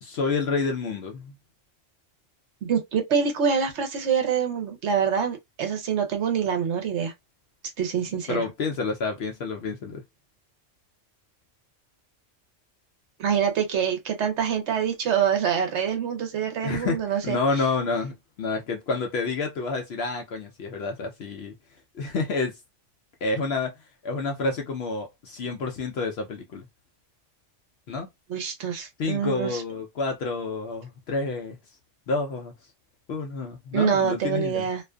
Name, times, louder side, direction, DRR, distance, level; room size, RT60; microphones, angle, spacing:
voice 1, 0.0-1.3 8.3-10.0 16.6-21.5 21.9-22.6 23.2-23.7 24.0-26.7 27.9-28.1 29.0-31.6 32.1-32.5 33.1-34.7, left 3 dB, 65° left, 0.7 m, -29 dB
voice 2, 2.6-7.1 7.8-8.4 13.2-17.4 28.3-29.6 33.7-34.8, right 7 dB, 70° right, 0.9 m, -25 dB
2.4 x 2.4 x 2.2 m
omnidirectional pair, 1.3 m